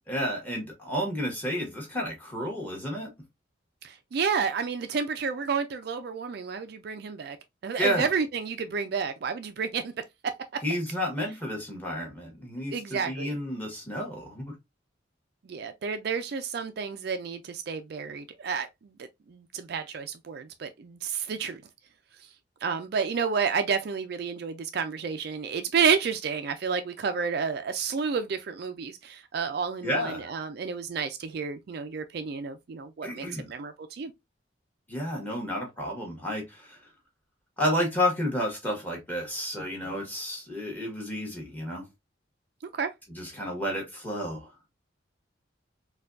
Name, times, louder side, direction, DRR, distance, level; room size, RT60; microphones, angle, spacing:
voice 1, 0.1-3.1 7.8-8.0 10.6-14.5 29.8-30.3 33.0-33.5 34.9-36.8 37.6-41.8 43.1-44.5, equal, 10° left, 1.3 m, -31 dB
voice 2, 3.8-7.4 7.6-9.9 12.7-13.4 15.5-18.7 19.0-21.6 22.6-34.1 42.7-42.9, right 6 dB, 50° right, 0.3 m, -30 dB
4.2 x 2.3 x 2.5 m
head